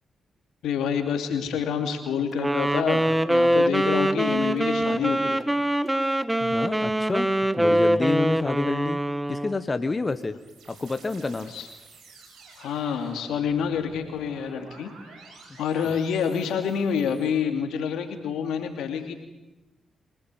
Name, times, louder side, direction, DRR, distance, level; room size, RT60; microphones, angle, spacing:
voice 1, 0.6-5.4 11.5-11.7 12.6-14.9 15.6-19.1, left 7 dB, 80° left, 6 dB, 2.7 m, -27 dB
Wind instrument woodwind instrument, 2.4-9.6, right 1 dB, 10° right, 1.5 m, -23 dB
voice 2, 6.4-9.0 9.3-10.4 10.7-11.5 15.8-15.9, left 3 dB, 35° left, 10 dB, 1.4 m, -28 dB
sound 1, 9.7-17.3, right 3 dB, 80° right, 5.4 m, -50 dB
25.5 x 17.5 x 9.2 m, 1.0 s
hypercardioid pair, 45°, 0 cm